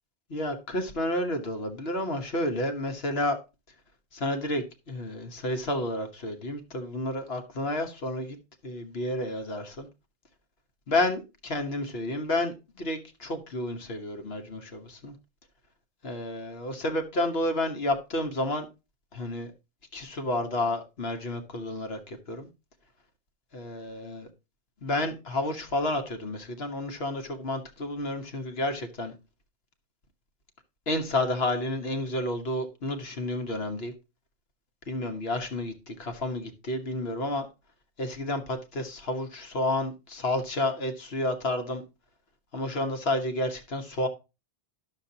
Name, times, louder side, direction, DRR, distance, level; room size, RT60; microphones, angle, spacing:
voice 1, 0.3-3.4 4.1-8.4 8.6-9.9 10.9-15.2 16.0-18.7 19.1-19.5 19.9-22.5 23.5-24.3 24.8-29.1 30.9-33.9 34.9-37.5 38.0-41.8 42.5-44.1, left 1 dB, 65° left, 1.5 m, -30 dB
11.0 x 6.7 x 2.8 m
omnidirectional pair, 1.1 m